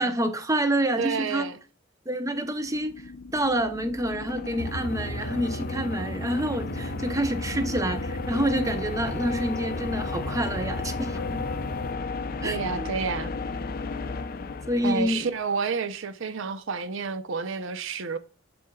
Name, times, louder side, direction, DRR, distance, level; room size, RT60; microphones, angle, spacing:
voice 1, 0.0-1.5 2.1-11.4 12.4-12.9 14.7-15.3, right 1 dB, 15° right, 0.7 m, -28 dB
voice 2, 1.0-1.6 12.4-13.3 14.8-18.2, right 5 dB, 65° right, 0.6 m, -30 dB
sound 1, 2.4-15.5, left 4 dB, 45° left, 0.5 m, -34 dB
sound 2, 4.6-11.9, equal, 90° left, 1.0 m, -36 dB
7.7 x 7.1 x 2.3 m
head